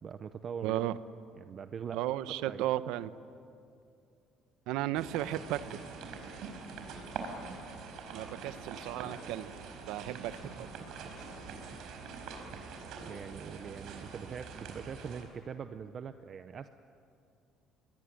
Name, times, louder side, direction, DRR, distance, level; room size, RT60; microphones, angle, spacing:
voice 1, 0.0-0.8 1.4-2.0 2.4-2.6 13.0-16.7, right 7 dB, 35° right, 10 dB, 0.7 m, -42 dB
voice 2, 0.6-1.0 1.9-3.1 4.7-5.8 8.1-9.5 9.9-10.7, right 14 dB, 90° right, 14 dB, 0.9 m, -34 dB
sound 1, 5.0-15.2, right 5 dB, 60° right, 4.7 m, -44 dB
sound 2, 5.9-11.8, left 4 dB, 60° left, 5.5 m, -63 dB
24.5 x 21.0 x 9.8 m, 2.4 s
cardioid pair, 155°, 0 cm